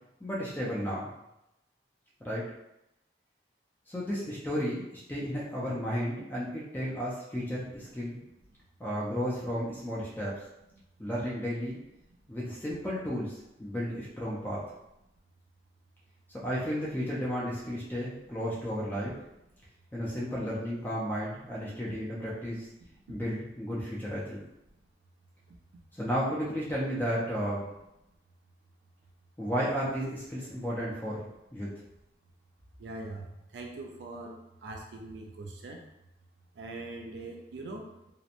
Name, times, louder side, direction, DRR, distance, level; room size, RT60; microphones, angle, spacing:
voice 1, 0.2-1.1 2.2-2.4 3.9-8.2 8.8-10.4 11.0-11.8 12.3-14.6 16.4-19.2 19.9-22.7 23.1-24.4 25.9-27.7 29.4-31.3 31.5-31.7, equal, 10° left, -6 dB, 0.4 m, -33 dB
voice 2, 32.8-33.3 33.5-35.8 36.6-38.1, right 2 dB, 75° right, 1 dB, 0.4 m, -42 dB
2.8 x 2.1 x 2.5 m, 0.87 s
head